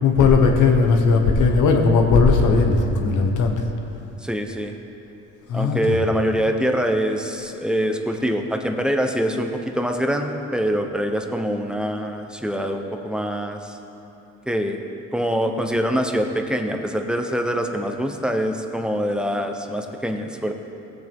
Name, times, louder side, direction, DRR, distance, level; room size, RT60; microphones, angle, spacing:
voice 1, 0.0-3.5 5.5-5.9, left 4 dB, 80° left, 3 dB, 1.3 m, -17 dB
voice 2, 4.2-4.7 5.5-13.8 14.5-14.8 15.1-20.5, equal, 5° right, 4 dB, 0.9 m, -24 dB
17.5 x 7.9 x 3.7 m, 2.9 s
cardioid pair, 90°, 30 cm